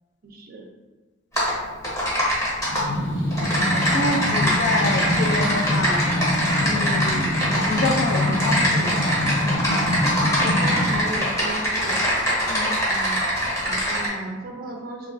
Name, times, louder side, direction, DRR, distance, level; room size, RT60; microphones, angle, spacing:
voice 1, 0.2-0.6 10.4-12.1 12.9-13.2 13.6-15.1, right 2 dB, 50° right, 2 dB, 0.4 m, -34 dB
Typing, 1.4-1.5 1.8-2.8 3.3-14.1, equal, 15° left, 0.7 m, -23 dB
sound 1, 2.7-11.0, left 1 dB, 75° left, 0.7 m, -25 dB
voice 2, 3.7-6.0 6.7-7.3 7.7-9.0 12.5-12.7, left 2 dB, 60° left, 2 dB, 0.4 m, -27 dB
2.9 x 2.4 x 2.5 m, 1.3 s
head